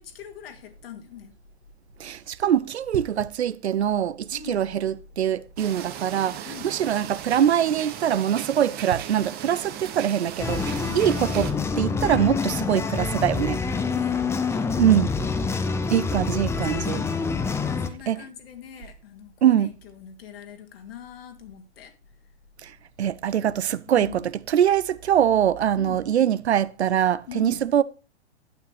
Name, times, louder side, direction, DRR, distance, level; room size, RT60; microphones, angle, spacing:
voice 1, 0.0-1.3 4.3-4.6 6.4-6.7 10.9-11.1 13.7-15.5 16.6-21.9 23.9-24.3 25.7-26.1 27.3-27.7, left 9 dB, 55° left, 2.3 m, -42 dB
voice 2, 2.0-11.5 11.8-13.6 14.8-15.1 15.9-17.0 18.1-18.2 19.4-19.7 22.6-22.7 23.0-24.2 24.5-27.8, right 10 dB, 70° right, 0.7 m, -23 dB
sound 1, 5.6-11.5, right 10 dB, 25° right, 1.2 m, -37 dB
sound 2, 10.4-17.9, left 4 dB, 10° left, 0.7 m, -26 dB
11.5 x 9.0 x 3.3 m
figure-of-eight pair, 105°, 35 cm